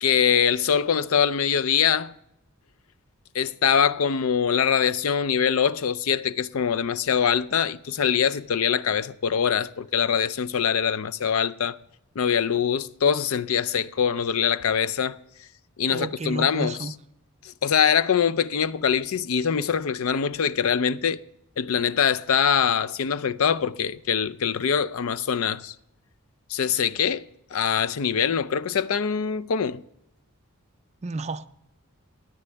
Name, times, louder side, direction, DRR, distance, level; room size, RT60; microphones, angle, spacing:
voice 1, 0.0-2.1 3.3-11.8 12.2-15.2 15.8-16.9 17.4-21.2 21.6-25.7 26.5-27.2 27.5-29.8, left 7 dB, 70° left, 0.5 m, -23 dB
voice 2, 15.9-16.9 31.0-31.5, right 3 dB, 30° right, 0.5 m, -31 dB
16.5 x 10.0 x 3.4 m
head